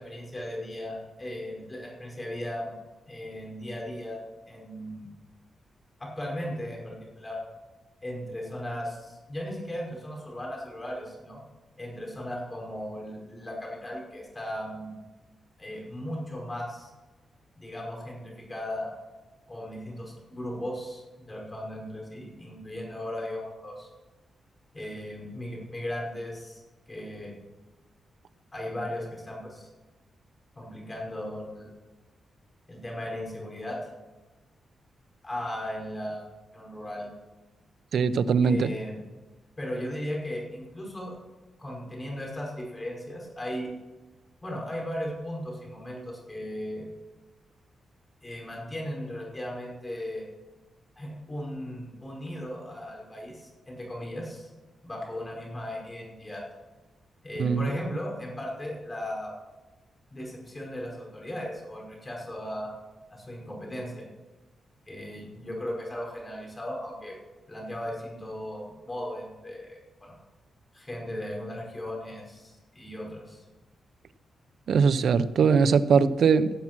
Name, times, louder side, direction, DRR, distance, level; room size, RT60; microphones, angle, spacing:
voice 1, 0.0-2.7 3.1-5.1 6.0-7.4 8.0-11.4 11.8-14.9 15.6-16.9 17.6-18.9 19.5-23.9 24.7-26.6 26.9-27.3 28.5-29.7 30.6-31.7 32.7-33.9 35.2-36.3 36.5-37.1 38.4-39.0 39.6-41.2 41.6-43.7 44.4-46.9 48.2-50.2 51.0-54.5 54.8-56.4 57.2-59.3 60.1-62.7 63.1-64.1 64.9-67.2 67.5-70.1 70.7-73.5, left 1 dB, 25° left, -1 dB, 5.4 m, -37 dB
voice 2, 37.9-38.7 57.4-57.7 74.7-76.5, right 5 dB, 70° right, 14 dB, 0.7 m, -21 dB
17.0 x 7.5 x 6.1 m, 1.2 s
cardioid pair, 90°, 0 cm